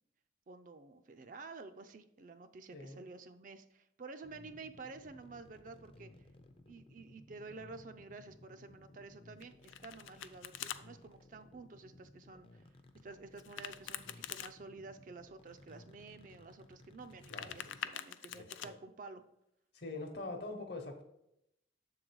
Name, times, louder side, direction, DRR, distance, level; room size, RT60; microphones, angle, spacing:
voice 1, 0.5-6.1 6.7-12.6 13.0-19.2, right 3 dB, 45° right, 8 dB, 0.4 m, -51 dB
voice 2, 2.7-3.0 17.3-17.7 18.3-18.8 19.7-21.0, left 2 dB, 60° left, 5 dB, 1.0 m, -44 dB
sound 1, 4.2-17.8, left 1 dB, 30° left, 0.5 m, -59 dB
Domestic sounds home sounds, 9.4-10.8 13.4-14.5 17.0-18.7, left 10 dB, 90° left, 0.4 m, -44 dB
7.0 x 3.8 x 4.6 m, 0.83 s
head